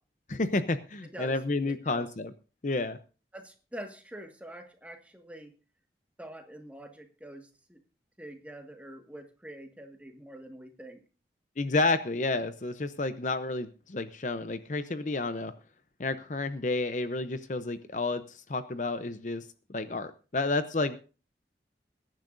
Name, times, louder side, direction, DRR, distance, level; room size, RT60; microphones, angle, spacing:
voice 1, 0.3-2.3 2.6-3.0 11.6-15.5 16.0-21.0, left 3 dB, 45° left, 11 dB, 0.7 m, -30 dB
voice 2, 1.0-1.4 1.7-2.1 3.3-5.5 6.2-7.8 8.2-11.0, right 1 dB, 10° right, 4 dB, 1.7 m, -45 dB
21.0 x 10.5 x 2.6 m, 0.35 s
head